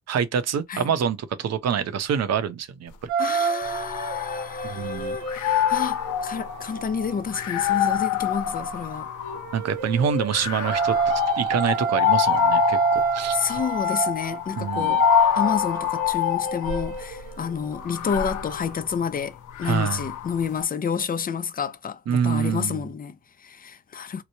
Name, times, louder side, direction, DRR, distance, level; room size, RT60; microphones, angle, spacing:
voice 1, 0.1-2.9 3.3-3.4 4.6-5.2 9.5-13.4 14.6-15.0 19.6-20.0 22.1-22.9, right 7 dB, 60° right, 0.7 m, -26 dB
sound 1, 3.1-7.8 9.0-18.8, right 5 dB, 90° right, 1.1 m, -29 dB
voice 2, 3.2-9.1 13.3-15.0 15.3-24.2, left 6 dB, 30° left, 0.5 m, -29 dB
sound 2, 3.7-4.8 5.2-9.6 10.3-17.0 17.8-20.4, left 12 dB, 80° left, 0.7 m, -26 dB
2.9 x 2.0 x 2.7 m
cardioid pair, 90°, 30 cm